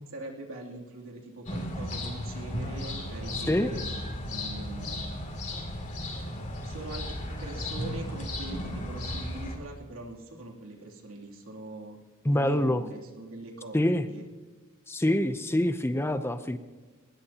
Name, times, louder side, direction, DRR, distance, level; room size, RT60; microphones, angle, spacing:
voice 1, 0.1-4.0 4.3-5.3 6.6-12.0 12.2-13.8 14.1-14.2, right 2 dB, 75° right, 0 dB, 2.9 m, -42 dB
sound 1, 1.5-9.6, left 1 dB, 35° left, 2.7 m, -35 dB
voice 2, 12.2-12.8 13.7-14.1 14.9-16.6, left 1 dB, 10° left, 10 dB, 0.6 m, -25 dB
21.0 x 19.5 x 2.9 m, 1.3 s
head